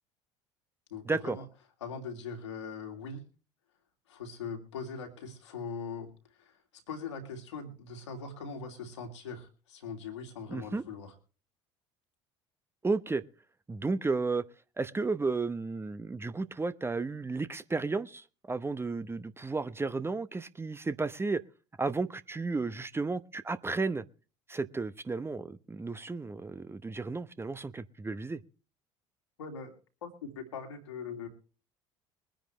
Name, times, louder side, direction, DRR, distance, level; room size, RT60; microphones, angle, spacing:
voice 1, 0.9-1.4 1.8-3.2 4.1-11.1 29.4-29.7 30.0-31.3, left 5 dB, 80° left, 2.7 m, -41 dB
voice 2, 10.5-10.8 12.8-13.2 13.7-14.4 14.8-21.4 21.8-24.0 24.5-28.4, right 3 dB, 15° right, 0.9 m, -33 dB
23.0 x 10.0 x 3.2 m
figure-of-eight pair, 60°, 15 cm